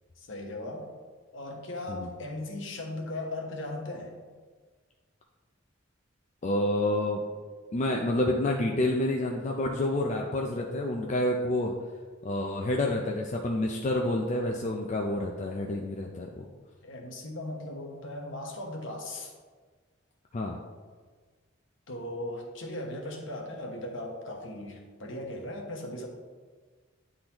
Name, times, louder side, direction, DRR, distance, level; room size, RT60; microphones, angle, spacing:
voice 1, 0.2-0.9 1.3-4.1 16.8-19.3 21.9-26.1, left 1 dB, 65° left, 1 dB, 1.1 m, -38 dB
voice 2, 6.4-7.2 7.7-11.7 12.2-16.4 20.3-20.6, left 1 dB, 35° left, 1 dB, 0.4 m, -28 dB
10.0 x 3.8 x 2.9 m, 1.5 s
head